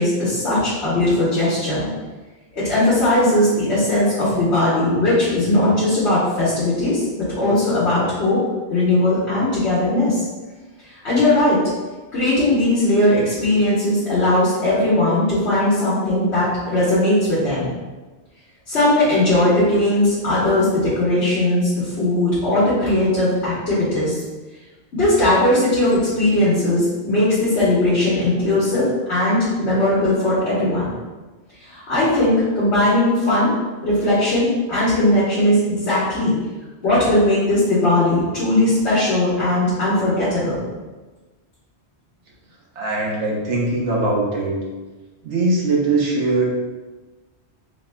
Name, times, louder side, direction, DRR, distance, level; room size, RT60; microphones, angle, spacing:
voice 1, 0.0-1.9 2.5-8.4 8.7-10.2 11.0-11.6 12.1-17.7 18.7-24.2 24.9-30.9 31.6-33.5 33.8-36.3 36.8-40.6, left 1 dB, 75° left, -10 dB, 1.5 m, -18 dB
voice 2, 42.7-44.6 45.2-46.4, right 2 dB, 85° right, -3 dB, 1.2 m, -21 dB
4.8 x 3.3 x 2.2 m, 1.2 s
omnidirectional pair, 1.1 m